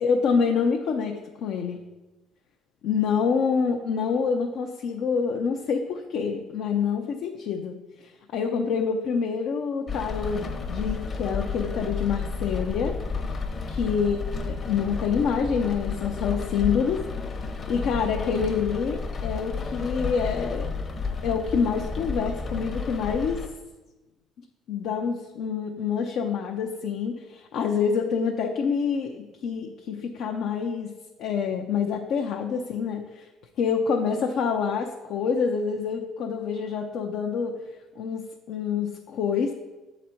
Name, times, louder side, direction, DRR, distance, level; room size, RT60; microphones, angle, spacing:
voice 1, 0.0-1.8 2.8-13.0 13.7-17.0 17.7-20.7 21.2-23.4 24.7-30.9 31.2-33.3 33.6-37.5 38.0-38.2 38.5-39.5, left 6 dB, 70° left, 2 dB, 0.6 m, -27 dB
Rain, 9.9-23.5, left 4 dB, 40° left, 0.9 m, -32 dB
7.6 x 4.0 x 4.4 m, 1.1 s
supercardioid pair, 80°, 0 cm